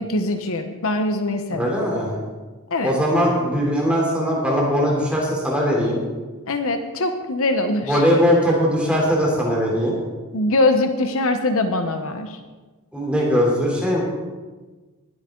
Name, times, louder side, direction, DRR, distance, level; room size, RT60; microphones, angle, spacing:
voice 1, 0.0-1.7 2.7-3.0 6.5-8.0 10.3-12.4, left 2 dB, 65° left, 7 dB, 0.9 m, -22 dB
voice 2, 1.5-2.1 2.8-6.0 7.8-10.0 12.9-14.0, equal, 5° right, -3 dB, 3.2 m, -20 dB
19.5 x 8.2 x 3.8 m, 1.3 s
head